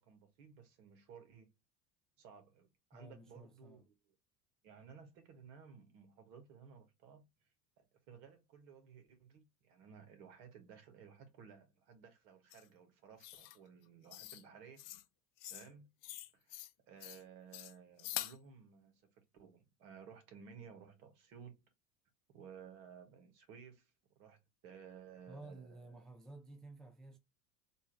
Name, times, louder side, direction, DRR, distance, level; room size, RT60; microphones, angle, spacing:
voice 1, 0.0-1.5 2.2-4.1 4.6-7.5 7.8-14.9 15.5-15.9 16.3-21.6 22.3-26.1, right 6 dB, 60° right, 1.8 m, -57 dB
voice 2, 2.9-3.8 25.3-27.2, right 2 dB, ahead, 0.5 m, -53 dB
sound 1, 12.5-12.6 13.2-13.6 14.1-14.4 14.8-15.0 15.4-15.7 16.0-16.7 17.0-17.2 17.5-18.4, left 14 dB, 40° left, 0.7 m, -45 dB
4.4 x 2.7 x 3.2 m
hypercardioid pair, 75°, 48 cm